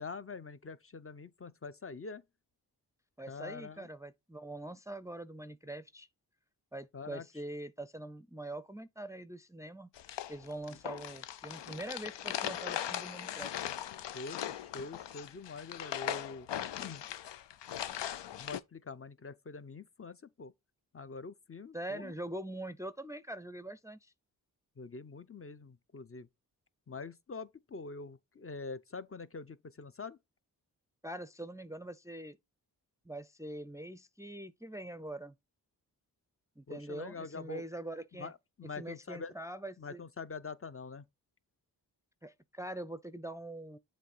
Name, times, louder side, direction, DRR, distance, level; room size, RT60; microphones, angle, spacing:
voice 1, 0.0-2.2 3.3-3.9 6.9-7.2 14.1-16.5 16.8-17.0 18.3-20.5 20.9-22.1 24.8-26.3 26.9-30.2 36.7-37.6 38.2-38.3 38.6-39.3 39.8-41.0, left 4 dB, 35° left, 0.7 m, -45 dB
voice 2, 3.2-6.1 6.7-9.9 10.3-13.5 21.7-24.1 31.0-32.4 33.1-35.3 36.6-38.3 38.8-40.0 42.2-43.8, right 1 dB, 5° right, 0.5 m, -43 dB
Stepping on plastic, 10.0-18.6, left 11 dB, 80° left, 0.6 m, -39 dB
7.5 x 3.2 x 5.4 m
cardioid pair, 40°, 42 cm